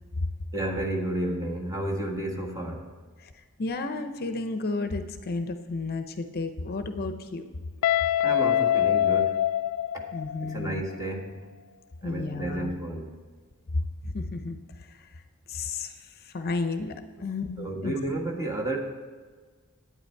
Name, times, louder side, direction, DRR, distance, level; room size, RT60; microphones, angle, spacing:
voice 1, 0.5-2.9 8.2-9.4 9.9-10.0 10.4-11.4 12.0-13.1 17.6-18.8, right 1 dB, 15° right, 0 dB, 1.5 m, -31 dB
voice 2, 3.6-7.4 10.1-10.8 12.0-12.7 14.0-14.6 15.5-15.9 16.3-16.9 17.2-17.9, left 3 dB, 45° left, 8 dB, 0.6 m, -32 dB
Guitar, 7.8-10.7, left 11 dB, 85° left, 0.4 m, -24 dB
11.0 x 9.2 x 4.5 m, 1.5 s
head